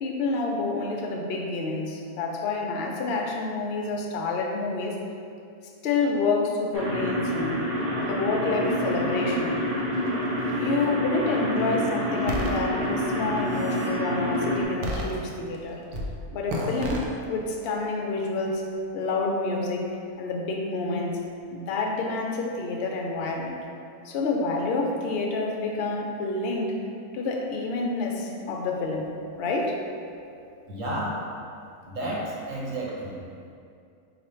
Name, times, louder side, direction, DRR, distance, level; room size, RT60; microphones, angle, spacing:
voice 1, 0.0-5.0 5.8-7.7 8.1-9.5 10.6-15.8 16.3-18.6 18.9-21.2 21.5-23.6 24.0-26.8 27.1-29.1 29.4-29.8, left 3 dB, 70° left, 0 dB, 0.6 m, -28 dB
sound 1, 6.7-14.6, equal, 40° right, 0.5 m, -27 dB
sound 2, 12.3-12.6 13.3-13.9 14.8-15.6 15.9-16.1 16.5-17.1, equal, 90° right, 1.1 m, -31 dB
voice 2, 30.7-31.3 31.9-33.2, right 1 dB, 65° right, -4 dB, 1.0 m, -31 dB
4.3 x 2.5 x 4.3 m, 2.4 s
omnidirectional pair, 1.6 m